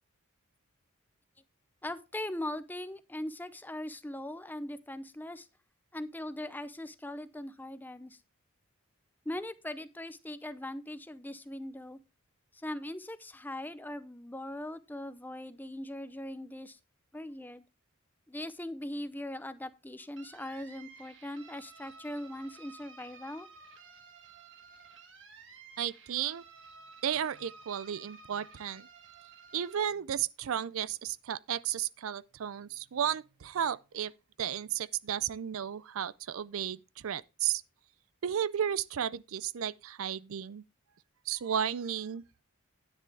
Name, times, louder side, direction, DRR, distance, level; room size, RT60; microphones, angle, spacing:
voice 1, 1.8-5.5 5.9-8.2 9.3-12.0 12.5-16.8 17.1-17.6 18.3-23.5, left 1 dB, 10° left, 0.6 m, -40 dB
sound 1, 20.2-29.8, right 4 dB, 60° right, 1.6 m, -53 dB
voice 2, 25.8-26.4 27.0-28.9 29.5-34.1 34.4-37.6 38.2-40.6 41.3-42.2, right 9 dB, 80° right, 0.4 m, -33 dB
10.0 x 9.6 x 3.4 m
head